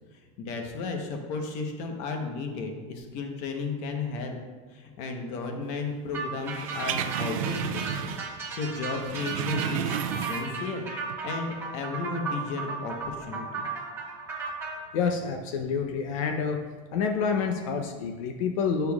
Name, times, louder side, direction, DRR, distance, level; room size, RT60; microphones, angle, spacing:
voice 1, 0.4-4.4 4.7-10.9 11.2-13.7, left 4 dB, 45° left, 3 dB, 1.0 m, -34 dB
sound 1, 6.1-14.7, right 4 dB, 15° right, 1.1 m, -35 dB
sound 2, 6.4-8.4 8.7-10.7 11.0-11.1, right 10 dB, 90° right, 0.5 m, -32 dB
voice 2, 14.9-16.6 16.9-18.9, left 5 dB, 80° left, 4 dB, 0.7 m, -28 dB
9.8 x 6.8 x 2.4 m, 1.5 s
supercardioid pair, 170°, 17 cm